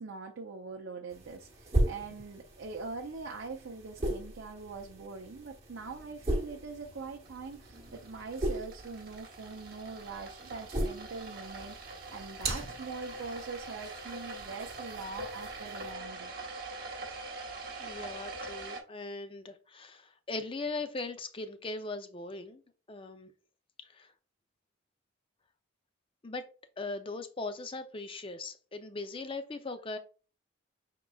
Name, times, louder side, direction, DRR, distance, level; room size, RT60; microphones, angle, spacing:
voice 1, 0.0-16.3, right 4 dB, 65° right, 0.6 m, -43 dB
sound 1, 1.1-15.9, right 1 dB, 30° right, 1.1 m, -38 dB
sound 2, 5.8-18.8, right 3 dB, 45° right, 1.2 m, -44 dB
voice 2, 17.8-22.6 22.9-23.3 23.8-24.1 26.2-26.4 26.8-30.0, left 3 dB, 25° left, 0.5 m, -39 dB
6.1 x 3.7 x 2.3 m
head